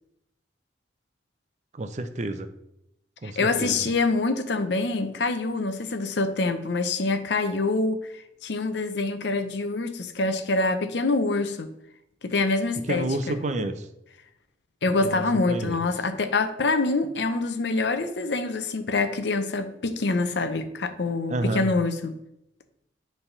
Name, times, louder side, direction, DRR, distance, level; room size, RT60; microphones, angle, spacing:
voice 1, 1.7-2.5 3.2-3.9 12.9-13.9 15.0-15.8 21.3-21.7, right 2 dB, 40° right, 0.5 m, -30 dB
voice 2, 3.2-8.1 8.4-11.7 12.2-13.4 14.8-22.2, left 3 dB, 70° left, 0.6 m, -25 dB
7.1 x 3.4 x 5.5 m
head